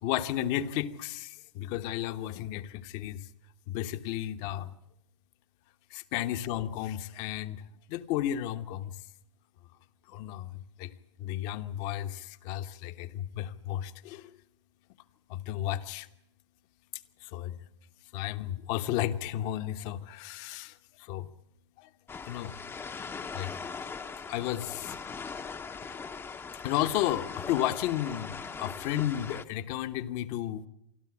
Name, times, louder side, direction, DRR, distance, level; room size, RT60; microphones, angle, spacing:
voice 1, 0.0-3.3 3.7-4.7 5.9-7.6 7.9-8.9 10.1-10.9 11.2-14.3 15.3-16.1 17.2-17.6 18.1-21.3 21.8-21.9 22.3-22.5 23.3-23.5 24.3-25.0 26.6-30.7, left 12 dB, 50° left, 9 dB, 1.2 m, -33 dB
sound 1, 22.1-29.4, left 5 dB, 15° left, 0.9 m, -40 dB
26.5 x 12.5 x 8.5 m, 0.83 s
hypercardioid pair, 110°, 15 cm